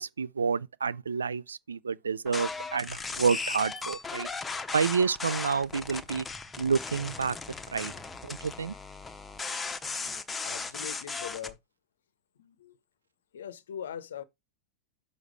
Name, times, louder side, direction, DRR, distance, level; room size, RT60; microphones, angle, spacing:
voice 1, 0.0-4.3 4.7-6.2 6.6-7.4 7.7-7.9 8.2-8.7, right 5 dB, 70° right, 0.3 m, -29 dB
sound 1, 2.3-11.5, left 4 dB, 15° left, 0.8 m, -37 dB
voice 2, 10.4-11.6 12.4-12.8 13.3-14.2, left 9 dB, 65° left, 0.7 m, -41 dB
6.4 x 4.3 x 4.7 m
figure-of-eight pair, 90°, 0 cm